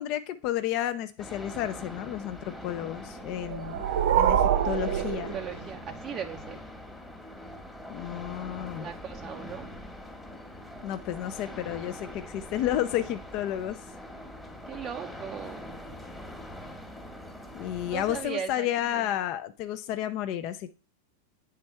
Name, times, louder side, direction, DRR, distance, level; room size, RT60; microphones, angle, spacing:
voice 1, 0.0-3.8 4.1-5.3 7.9-8.9 10.8-13.9 17.5-20.7, left 12 dB, 50° left, 10 dB, 0.4 m, -31 dB
sound 1, 1.2-18.2, left 1 dB, 5° left, 1.1 m, -43 dB
sound 2, 3.3-6.0, right 9 dB, 75° right, 0.7 m, -26 dB
voice 2, 4.8-6.6 8.8-9.7 14.7-15.7 17.8-19.1, right 8 dB, 30° right, 4 dB, 0.4 m, -38 dB
8.6 x 3.5 x 4.3 m, 0.37 s
hypercardioid pair, 125°, 0 cm